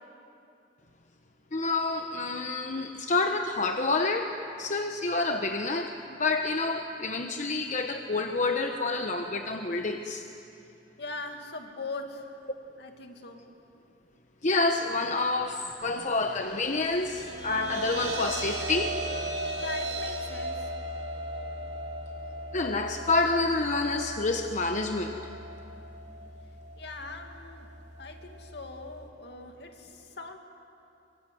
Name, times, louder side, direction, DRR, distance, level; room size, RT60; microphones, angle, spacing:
voice 1, 1.5-4.3 4.6-10.2 14.4-19.0 22.5-25.2, left 3 dB, 45° left, 5 dB, 1.1 m, -28 dB
voice 2, 11.0-12.3 12.8-13.4 19.6-20.7 26.8-27.7 28.0-30.4, left 3 dB, 70° left, 4 dB, 2.4 m, -41 dB
sound 1, 16.7-29.1, right 1 dB, 70° right, 3.5 m, -37 dB
24.0 x 23.5 x 9.4 m, 2.7 s
head